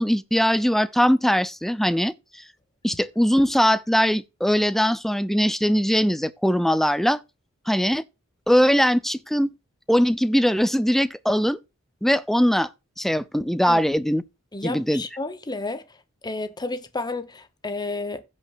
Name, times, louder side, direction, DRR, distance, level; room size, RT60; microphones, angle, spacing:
voice 1, 0.0-2.1 2.8-7.2 7.7-8.0 8.5-9.5 9.9-11.6 12.0-12.7 13.0-14.2 14.6-15.0, equal, ahead, 0.6 m, -21 dB
voice 2, 14.5-15.8 16.2-18.2, left 3 dB, 20° left, 1.0 m, -31 dB
16.0 x 5.5 x 2.7 m
head